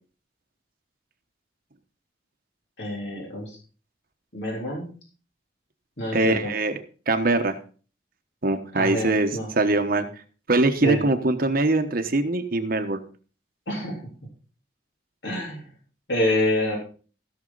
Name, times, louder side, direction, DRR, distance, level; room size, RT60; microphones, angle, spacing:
voice 1, 2.8-3.6 4.3-4.9 6.0-6.5 8.7-9.5 10.8-11.0 13.7-14.0 15.2-15.7 16.1-16.8, left 1 dB, 65° left, -2 dB, 3.4 m, -27 dB
voice 2, 6.1-6.8 7.1-7.5 8.4-10.1 10.5-13.0, right 2 dB, 55° right, 6 dB, 1.1 m, -22 dB
16.0 x 6.5 x 4.0 m, 0.38 s
head